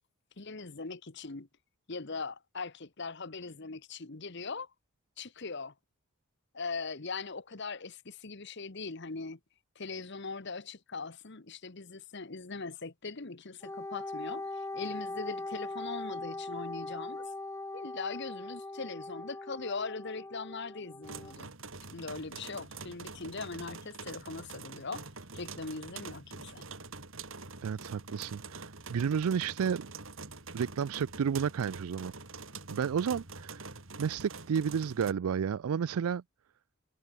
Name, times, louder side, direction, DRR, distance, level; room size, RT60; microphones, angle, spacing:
voice 1, 0.4-1.5 1.9-4.7 5.2-5.7 6.5-9.4 9.7-17.3 17.7-21.5 21.9-25.0 25.3-26.7, left 4 dB, 55° left, 1.2 m, -40 dB
Wind instrument woodwind instrument, 13.6-21.3, left 2 dB, 15° left, 0.6 m, -40 dB
sound 1, 21.0-35.1, right 4 dB, 65° right, 3.3 m, -45 dB
voice 2, 27.6-29.9 30.5-32.1 32.7-33.7 34.0-36.2, right 7 dB, 80° right, 0.4 m, -31 dB
head